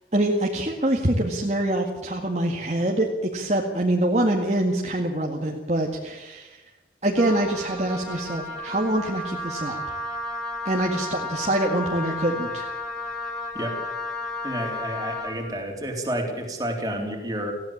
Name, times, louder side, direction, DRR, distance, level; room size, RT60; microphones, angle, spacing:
voice 1, 0.1-6.6 7.0-9.8 10.7-12.7, right 1 dB, 40° right, 0 dB, 2.0 m, -25 dB
Wind instrument woodwind instrument, 7.1-15.4, left 2 dB, 5° left, 4.7 m, -33 dB
voice 2, 14.4-17.5, equal, 20° right, 2 dB, 3.8 m, -30 dB
19.0 x 16.0 x 8.7 m, 1.0 s
head